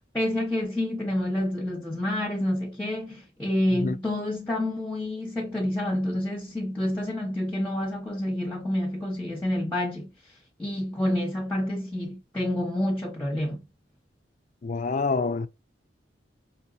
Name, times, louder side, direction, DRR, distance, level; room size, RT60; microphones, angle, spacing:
voice 1, 0.1-10.1 10.6-13.6, left 1 dB, 10° left, 0.8 m, -28 dB
voice 2, 14.6-15.5, left 4 dB, 40° left, 0.3 m, -26 dB
4.5 x 2.8 x 2.4 m
head